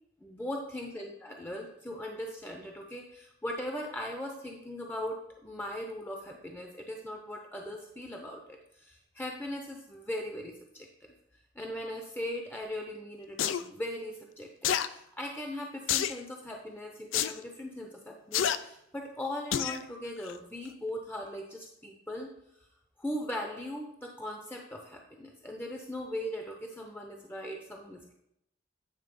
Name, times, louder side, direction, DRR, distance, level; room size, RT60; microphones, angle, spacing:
voice 1, 0.2-10.9 11.6-22.3 23.0-28.1, left 1 dB, 10° left, 2 dB, 0.6 m, -39 dB
sound 1, 13.4-13.6 14.6-14.9 15.9-16.2 17.1-17.3 18.3-18.6 19.5-19.8 20.3-20.4, left 10 dB, 90° left, 0.4 m, -28 dB
8.9 x 3.6 x 5.2 m, 0.78 s
head